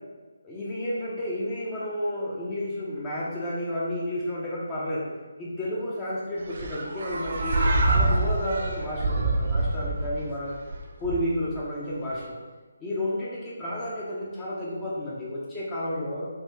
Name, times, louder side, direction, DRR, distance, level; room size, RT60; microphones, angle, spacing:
voice 1, 0.4-5.1 5.4-10.6 11.0-12.4 12.8-16.3, left 1 dB, 15° left, -6 dB, 0.5 m, -31 dB
sound 1, 6.5-11.6, right 2 dB, 50° right, 0.4 m, -26 dB
3.4 x 2.5 x 2.7 m, 1.3 s
figure-of-eight pair, 150°, 0 cm